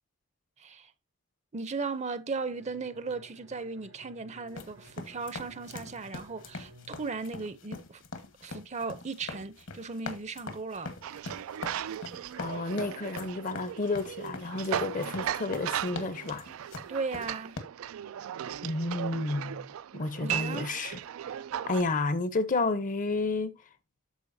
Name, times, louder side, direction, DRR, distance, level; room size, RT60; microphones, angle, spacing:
voice 1, 0.6-0.9 1.5-8.0 8.4-11.0 16.9-17.6 20.2-20.7, right 4 dB, 35° right, 0.6 m, -37 dB
Bowed string instrument, 2.5-8.1, right 1 dB, 85° right, 3.8 m, -56 dB
sound 1, 4.5-17.6, left 3 dB, 65° left, 1.4 m, -43 dB
sound 2, 11.0-21.8, right 10 dB, 70° right, 0.3 m, -37 dB
voice 2, 12.4-16.5 18.6-21.0 21.6-23.6, left 3 dB, 40° left, 0.7 m, -31 dB
13.0 x 4.6 x 2.6 m
head